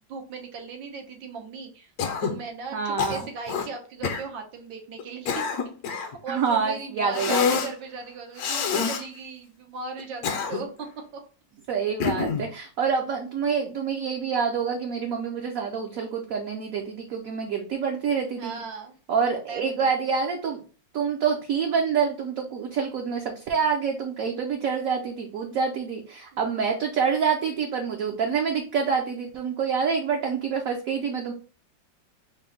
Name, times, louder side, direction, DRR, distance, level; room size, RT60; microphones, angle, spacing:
voice 1, 0.1-1.9 2.2-5.5 5.9-11.2 18.4-18.9 19.5-20.0 26.3-26.5, right 4 dB, 90° right, 3 dB, 1.6 m, -38 dB
Cough, 2.0-2.4 3.0-3.7 4.0-4.3 5.0-6.2 7.1-7.7 8.4-9.0 10.0-10.8 12.0-12.5, left 6 dB, 70° left, 1.0 m, -27 dB
voice 2, 2.7-3.2 6.3-7.4 11.7-18.6 19.1-20.6 20.9-31.3, right 6 dB, 70° right, 1 dB, 0.8 m, -27 dB
4.3 x 2.1 x 3.8 m, 0.38 s
omnidirectional pair, 2.0 m